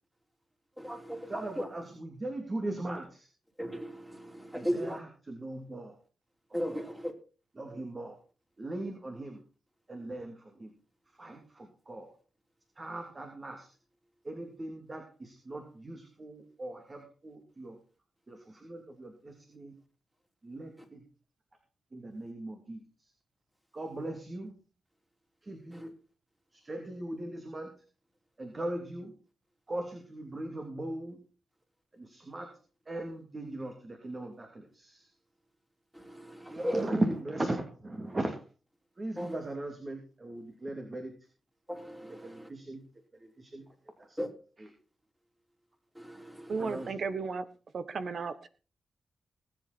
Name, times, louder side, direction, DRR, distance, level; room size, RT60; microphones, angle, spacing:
voice 1, 0.8-1.7 3.6-5.0 6.5-7.1 25.7-25.9 35.9-37.0 39.2-39.4 41.7-42.5 44.2-44.3 46.0-46.9, equal, 5° right, 3.8 m, -37 dB
voice 2, 1.3-3.3 4.6-6.0 6.7-6.8 7.6-8.2 8.6-9.4 9.9-10.7 11.1-12.2 12.8-13.7 14.2-17.8 18.3-18.5 19.5-19.7 20.4-21.0 21.9-23.1 23.7-24.5 25.4-25.9 26.5-27.7 28.4-29.1 29.7-31.2 31.9-32.5 32.9-35.1 36.5-38.4 39.0-41.1 42.2-42.8 43.1-44.2 46.6-46.9, right 1 dB, 35° right, 3.0 m, -38 dB
voice 3, 46.5-47.5 47.7-48.5, right 4 dB, 60° right, 1.4 m, -34 dB
19.5 x 8.3 x 4.4 m
cardioid pair, 75°, 0 cm